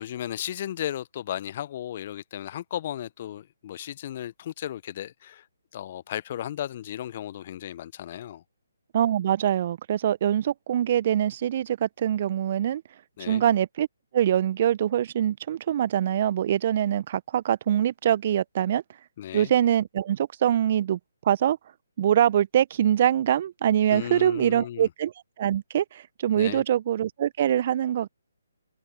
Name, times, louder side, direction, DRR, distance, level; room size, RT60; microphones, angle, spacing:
voice 1, 0.0-5.5 5.7-8.4 13.2-13.4 19.2-19.5 23.9-24.9 26.4-26.6, left 11 dB, 40° left, 1.1 m, -35 dB
voice 2, 8.9-12.8 13.3-13.9 14.1-18.8 19.3-21.0 21.2-21.6 22.0-25.1 25.4-28.1, right 10 dB, 40° right, 0.9 m, -24 dB
open air
figure-of-eight pair, 140°, 0 cm